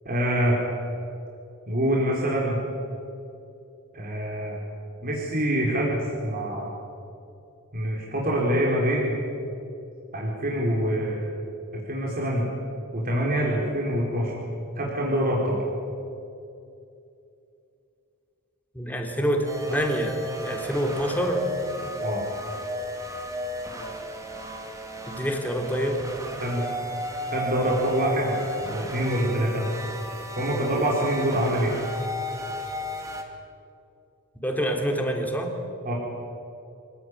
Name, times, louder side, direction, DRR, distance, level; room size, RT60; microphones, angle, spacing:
voice 1, 0.0-0.6 1.7-2.6 3.9-4.6 5.0-6.7 7.7-9.1 10.1-11.2 11.7-12.5 12.9-14.3 14.8-15.6 22.0-22.2 26.4-26.6 27.3-28.3 28.6-29.6 30.3-31.7 35.8-35.9, equal, 40° right, -3 dB, 4.6 m, -25 dB
voice 2, 18.7-21.5 25.0-26.0 34.4-35.5, equal, 10° left, 2 dB, 3.4 m, -26 dB
sound 1, 19.4-33.2, equal, 15° right, 2.8 m, -35 dB
26.5 x 18.0 x 9.9 m, 2.6 s
head